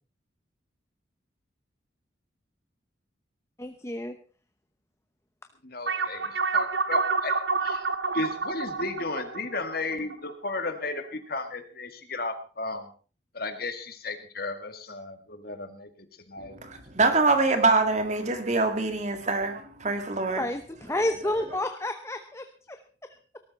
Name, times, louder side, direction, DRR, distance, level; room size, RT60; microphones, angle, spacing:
voice 1, 3.6-4.1 20.4-22.8, left 1 dB, 15° left, 0.9 m, -30 dB
voice 2, 5.6-7.4 7.6-7.9 8.1-12.9 13.3-15.9 16.3-16.6 17.1-17.2, left 3 dB, 55° left, 1.9 m, -34 dB
sound 1, 5.9-10.7, right 4 dB, 70° right, 1.0 m, -28 dB
voice 3, 16.4-20.5, right 3 dB, 40° right, 1.9 m, -25 dB
18.5 x 13.0 x 4.1 m
head